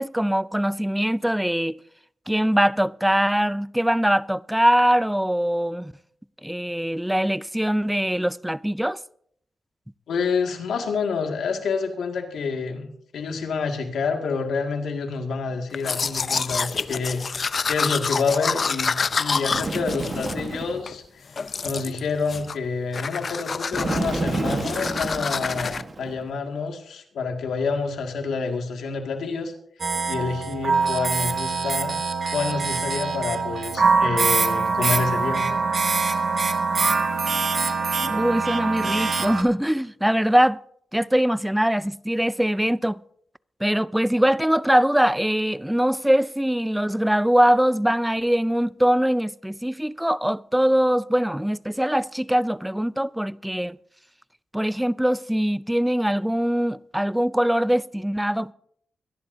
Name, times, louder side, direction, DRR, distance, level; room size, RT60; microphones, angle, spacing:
voice 1, 0.0-1.8 2.3-5.9 6.4-9.0 38.0-40.6 40.9-43.0 43.6-53.8 54.5-58.5, equal, 5° right, 0.4 m, -22 dB
voice 2, 10.1-12.9 13.1-29.5 30.1-32.0 32.3-35.4, left 4 dB, 85° left, 2.0 m, -28 dB
Domestic sounds home sounds, 15.7-21.0 21.4-22.0 22.3-22.7 22.9-25.8, left 5 dB, 50° left, 0.5 m, -28 dB
Bird, 19.5-20.9 23.7-26.2, right 3 dB, 35° right, 1.3 m, -29 dB
sound 1, 29.8-39.4, right 4 dB, 50° right, 1.8 m, -23 dB
23.5 x 11.5 x 2.7 m
cardioid pair, 75°, 0 cm